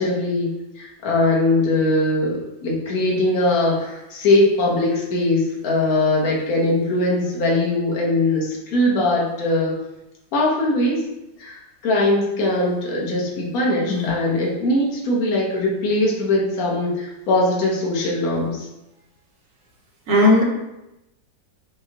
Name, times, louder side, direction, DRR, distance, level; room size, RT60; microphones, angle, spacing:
voice 1, 0.0-9.7 10.3-11.0 11.4-11.6 11.8-18.7, left 2 dB, 55° left, -3 dB, 1.2 m, -21 dB
voice 2, 20.1-20.4, left 2 dB, 55° right, -2 dB, 0.9 m, -16 dB
5.6 x 2.2 x 2.8 m, 0.92 s
omnidirectional pair, 2.0 m